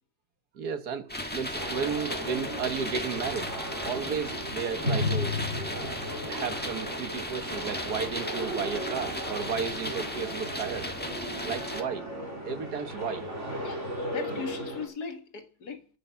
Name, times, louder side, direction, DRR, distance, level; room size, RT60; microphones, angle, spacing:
voice 1, 0.5-3.6 3.8-5.4 5.9-10.9 11.4-12.1 12.4-13.3, right 6 dB, 65° right, 1.8 m, -34 dB
sound 1, 1.1-11.8, left 1 dB, 5° left, 1.3 m, -36 dB
sound 2, 1.5-14.9, left 1 dB, 40° right, 4.4 m, -35 dB
voice 2, 13.6-15.9, left 5 dB, 65° left, 2.1 m, -39 dB
12.5 x 9.1 x 5.8 m
omnidirectional pair, 1.8 m